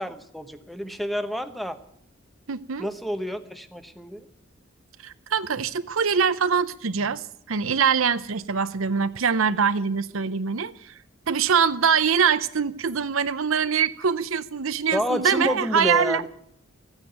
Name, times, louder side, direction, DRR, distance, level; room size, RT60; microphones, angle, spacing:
voice 1, 0.0-1.8 2.8-4.3 14.9-16.3, equal, ahead, 0.9 m, -29 dB
voice 2, 2.5-2.9 5.0-10.9 11.3-16.2, right 6 dB, 75° right, 0.7 m, -23 dB
14.5 x 9.7 x 9.2 m
head